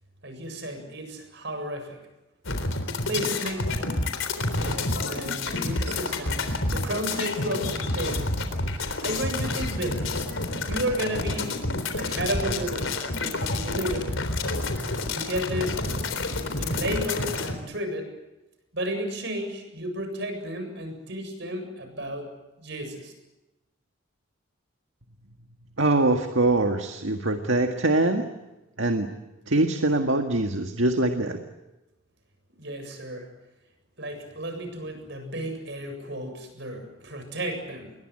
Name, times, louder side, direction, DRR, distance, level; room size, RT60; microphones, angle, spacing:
voice 1, 0.2-2.0 3.0-3.7 4.6-8.3 9.0-10.2 10.7-11.6 11.9-14.0 15.1-15.8 16.6-18.1 18.7-23.1 32.6-33.3 34.0-37.9, right 1 dB, 55° right, 6 dB, 7.6 m, -33 dB
sound 1, 2.4-17.5, left 2 dB, 70° left, 3.8 m, -29 dB
voice 2, 25.8-28.3 28.8-29.1 29.5-31.4, right 2 dB, 70° right, 5 dB, 1.8 m, -23 dB
28.5 x 22.5 x 7.8 m, 0.99 s
head